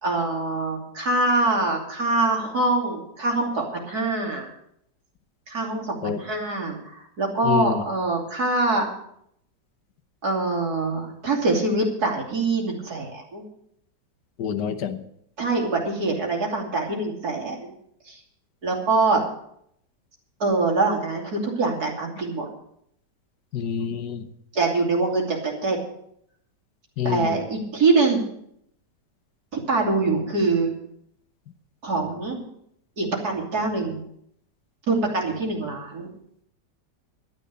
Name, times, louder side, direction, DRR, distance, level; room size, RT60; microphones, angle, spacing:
voice 1, 0.0-4.5 5.5-8.9 10.2-13.4 15.4-17.7 18.1-18.2 18.6-19.2 20.4-22.5 23.8-23.9 24.5-25.8 27.0-28.2 29.7-30.7 31.8-32.4 33.0-34.0 34.9-36.1, right 3 dB, 65° right, 0 dB, 3.4 m, -24 dB
voice 2, 7.5-7.8 14.4-15.0 23.5-24.2 27.0-27.4, left 8 dB, 75° left, 7 dB, 1.6 m, -27 dB
12.0 x 9.9 x 6.8 m, 0.72 s
omnidirectional pair, 1.8 m